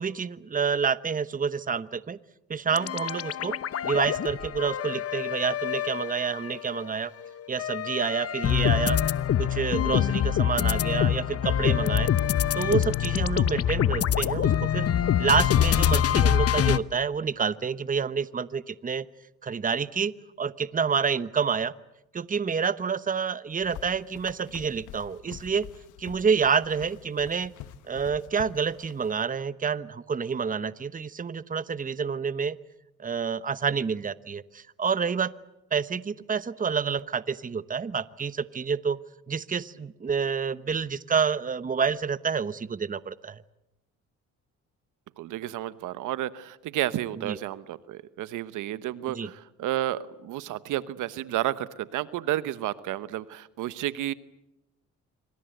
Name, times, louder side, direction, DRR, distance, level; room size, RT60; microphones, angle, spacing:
voice 1, 0.0-2.2 2.5-3.6 3.8-7.1 7.5-9.0 9.4-12.1 12.5-14.9 15.2-19.1 19.4-21.7 22.1-25.7 26.0-27.5 27.9-32.6 33.0-35.3 35.7-39.0 39.3-43.4 47.2-47.4 49.1-49.3, right 6 dB, 25° right, 16 dB, 1.0 m, -28 dB
sound 1, 2.7-6.8 7.2-16.8, left 10 dB, 50° left, 1.0 m, -25 dB
Carpet Dress Shoes, 23.6-29.1, left 11 dB, 90° left, 1.4 m, -46 dB
voice 2, 45.2-54.1, right 13 dB, 90° right, 15 dB, 1.1 m, -31 dB
27.0 x 25.0 x 8.0 m, 0.89 s
cardioid pair, 90°, 30 cm